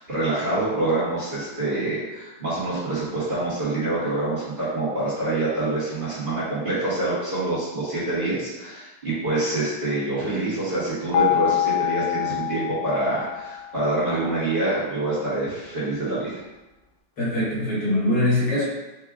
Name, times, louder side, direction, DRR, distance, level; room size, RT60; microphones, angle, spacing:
voice 1, 0.0-16.4, right 2 dB, 30° right, -12 dB, 1.5 m, -26 dB
sound 1, 11.1-14.1, left 11 dB, 75° left, 1.3 m, -25 dB
voice 2, 17.2-18.6, left 1 dB, 60° left, -7 dB, 2.0 m, -22 dB
4.9 x 2.7 x 3.5 m, 1.1 s
omnidirectional pair, 2.1 m